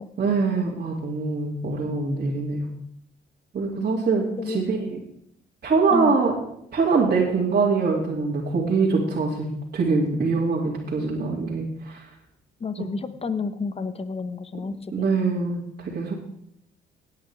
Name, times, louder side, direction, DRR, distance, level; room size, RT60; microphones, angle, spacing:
voice 1, 0.2-2.7 3.5-5.0 5.6-6.3 6.7-12.1 12.8-12.9 14.9-16.2, right 4 dB, 45° right, -5 dB, 2.7 m, -24 dB
voice 2, 12.6-15.1, left 4 dB, 30° left, 12 dB, 1.0 m, -30 dB
17.5 x 9.4 x 3.5 m, 0.72 s
cardioid pair, 90°, 20 cm